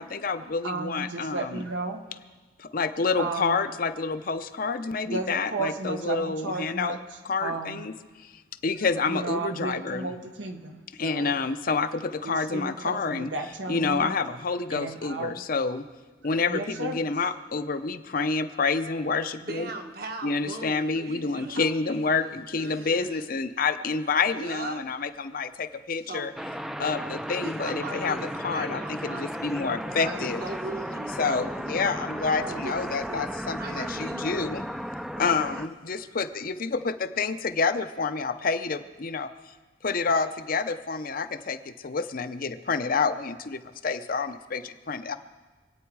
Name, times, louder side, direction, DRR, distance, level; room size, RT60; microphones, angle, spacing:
voice 1, 0.0-1.6 2.6-7.0 7.3-7.9 8.2-8.3 8.6-10.1 11.0-13.3 13.7-15.9 16.2-19.7 20.2-26.3 26.8-30.4 31.2-34.7 35.2-39.3 39.8-45.2, left 4 dB, 50° left, 10 dB, 0.7 m, -28 dB
voice 2, 0.6-2.0 3.2-3.7 5.0-7.8 9.1-11.4 12.2-14.2 14.7-15.4 16.5-17.1, right 3 dB, 85° right, 4 dB, 1.4 m, -34 dB
voice 3, 19.4-23.3 24.3-25.0 26.0-26.4 27.4-29.3 30.0-31.4 32.4-33.3 33.6-34.3, right 2 dB, 55° right, 4 dB, 1.5 m, -39 dB
sound 1, 26.4-35.7, equal, ahead, 0.5 m, -35 dB
26.0 x 9.0 x 4.7 m, 1.3 s
head